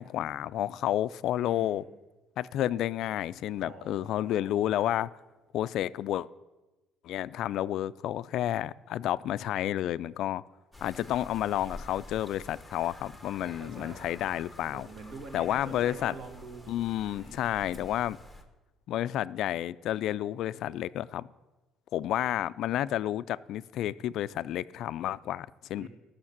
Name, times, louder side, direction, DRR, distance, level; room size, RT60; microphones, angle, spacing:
voice 1, 0.0-1.8 2.4-5.1 5.5-6.3 7.0-10.4 10.8-14.9 15.3-16.1 16.7-18.2 18.9-21.3 21.9-25.9, left 12 dB, 60° left, 0.3 m, -31 dB
voice 2, 1.3-2.0 3.6-4.6 13.4-14.1 14.7-16.7 17.1-18.1 25.7-25.9, right 3 dB, 60° right, 2.3 m, -46 dB
sound 1, 10.7-18.4, left 1 dB, ahead, 1.0 m, -49 dB
14.5 x 6.5 x 7.3 m
cardioid pair, 155°, 0 cm